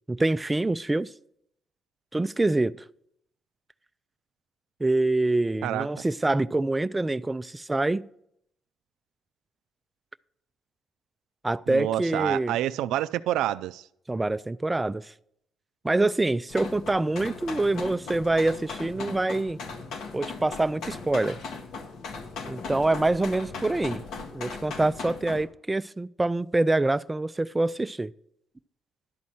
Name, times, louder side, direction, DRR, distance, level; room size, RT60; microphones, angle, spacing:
voice 1, 0.1-1.1 2.1-2.8 4.8-8.1 11.4-12.6 14.1-15.1 15.8-19.6 20.1-21.4 22.5-24.0 24.3-28.1, right 2 dB, 15° right, 0.3 m, -25 dB
voice 2, 11.7-13.9, right 13 dB, 90° right, 0.3 m, -28 dB
sound 1, 16.5-25.4, left 4 dB, 75° left, 1.2 m, -38 dB
11.5 x 4.2 x 7.6 m
cardioid pair, 90°, 0 cm